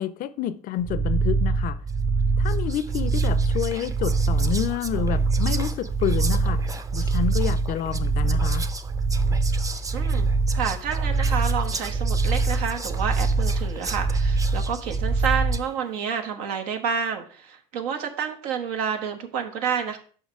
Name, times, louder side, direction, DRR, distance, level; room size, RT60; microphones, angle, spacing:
voice 1, 0.0-1.8 2.4-6.6 6.9-8.7, left 10 dB, 50° left, 0.5 m, -29 dB
sound 1, 0.8-15.6, right 3 dB, 40° right, 1.2 m, -24 dB
Whispering, 1.9-2.1 2.4-15.7, right 3 dB, 20° right, 0.5 m, -38 dB
voice 2, 9.9-10.3 10.5-20.0, right 7 dB, 85° right, 1.1 m, -29 dB
5.7 x 5.5 x 4.7 m
supercardioid pair, 95°, 18 cm